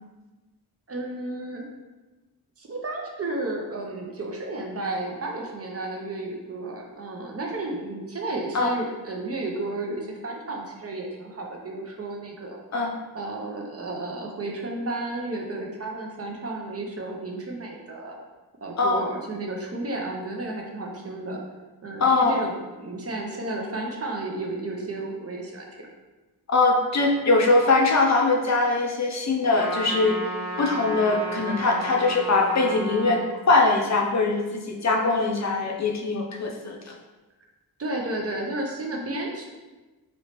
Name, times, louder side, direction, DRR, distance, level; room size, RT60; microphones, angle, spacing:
voice 1, 0.9-1.7 2.6-12.6 13.1-18.2 18.6-21.4 21.8-25.9 37.8-39.5, right 2 dB, 40° right, 0 dB, 0.5 m, -32 dB
voice 2, 22.0-22.4 26.5-30.2 30.6-33.2 33.5-36.9, left 3 dB, 45° left, 0 dB, 0.4 m, -22 dB
Trumpet, 29.5-33.2, right 1 dB, 15° right, 0.8 m, -33 dB
3.0 x 2.8 x 2.9 m, 1.2 s
wide cardioid pair, 125°, 39 cm